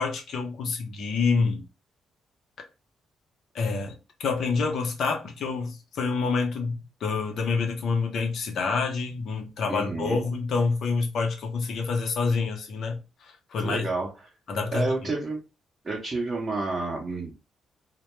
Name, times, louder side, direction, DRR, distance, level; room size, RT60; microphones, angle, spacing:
voice 1, 0.0-1.6 3.5-3.9 4.2-13.9 14.5-14.9, left 4 dB, 70° left, 0.7 m, -27 dB
voice 2, 9.7-10.2 13.6-14.1 14.7-15.4 15.8-17.3, right 3 dB, 35° right, 0.7 m, -29 dB
2.1 x 2.1 x 2.9 m
cardioid pair, 75°, 0 cm